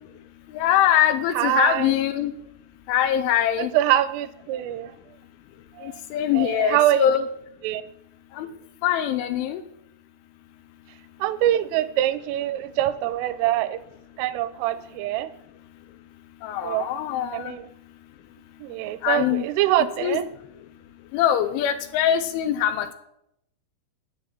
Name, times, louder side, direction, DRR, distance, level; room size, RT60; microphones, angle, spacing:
voice 1, 0.5-2.3 2.9-3.7 5.8-7.3 8.4-8.5 8.8-9.6 16.4-17.5 19.0-19.5 20.0-20.2 21.1-22.9, left 10 dB, 80° left, 10 dB, 3.0 m, -23 dB
voice 2, 1.4-2.0 3.6-4.9 5.8-6.0 6.3-7.1 7.6-7.8 11.2-13.8 14.2-15.3 16.6-16.9 17.3-17.7 18.6-20.2, right 13 dB, 85° right, 13 dB, 3.2 m, -24 dB
10.5 x 9.3 x 7.5 m, 0.79 s
omnidirectional pair, 5.9 m